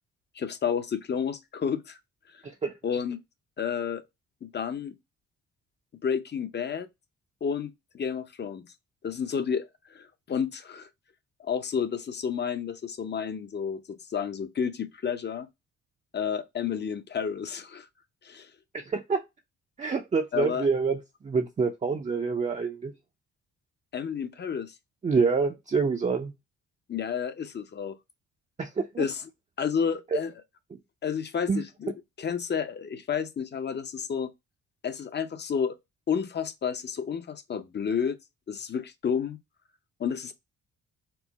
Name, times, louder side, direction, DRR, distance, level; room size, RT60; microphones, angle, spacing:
voice 1, 0.3-2.0 2.3-2.4 2.8-3.2 3.6-4.0 4.4-4.9 6.0-6.9 7.4-8.7 9.0-10.9 11.4-15.5 16.1-17.9 18.2-18.5 20.3-20.7 23.9-24.7 26.9-28.0 29.0-29.2 29.6-30.3 31.0-31.9 32.2-34.3 34.8-35.8 36.1-38.2 38.5-39.4 40.0-40.3, left 7 dB, 35° left, 0.6 m, -31 dB
voice 2, 2.4-2.7 18.7-19.2 19.8-22.9 25.0-26.3 28.6-29.1 30.1-30.2 30.7-30.8 31.5-31.6, right 5 dB, 25° right, 0.5 m, -27 dB
4.5 x 2.0 x 3.9 m
cardioid pair, 90°, 30 cm